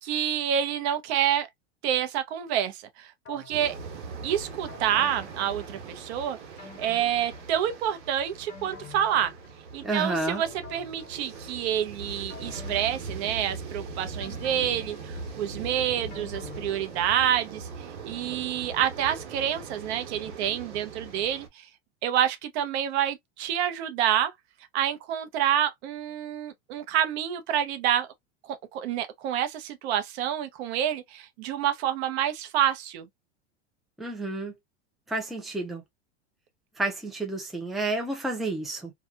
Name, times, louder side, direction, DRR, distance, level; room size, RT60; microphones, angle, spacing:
voice 1, 0.0-1.5 1.8-3.8 4.2-6.4 6.8-9.3 9.7-17.7 18.0-21.7 22.0-24.3 24.7-28.1 28.5-33.1, right 10 dB, 70° right, 0.8 m, -28 dB
sound 1, 3.3-4.1 4.7-6.1 6.6-7.9 8.3-9.9 10.4-11.7 12.3-13.7 14.2-17.5 17.8-17.9, left 6 dB, 30° left, 1.1 m, -49 dB
sound 2, 3.5-21.5, right 4 dB, 90° right, 1.3 m, -41 dB
voice 2, 9.8-10.4 34.0-34.5 35.1-35.8 36.8-38.9, right 2 dB, ahead, 0.5 m, -30 dB
2.7 x 2.4 x 2.2 m
supercardioid pair, 130°, 34 cm